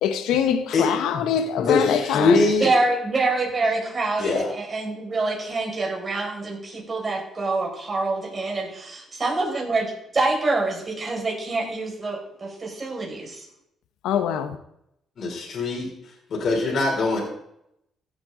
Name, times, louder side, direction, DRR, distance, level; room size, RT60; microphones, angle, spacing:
voice 1, 0.0-2.4 14.0-14.6, left 8 dB, 90° left, 1.0 m, -23 dB
voice 2, 1.1-2.7 4.2-4.5 15.2-15.9 16.3-17.2, left 3 dB, 55° left, 3.5 m, -22 dB
voice 3, 2.6-9.9 10.2-13.5, right 3 dB, 35° right, 5.6 m, -26 dB
16.0 x 8.8 x 3.9 m
cardioid pair, 90°, 0 cm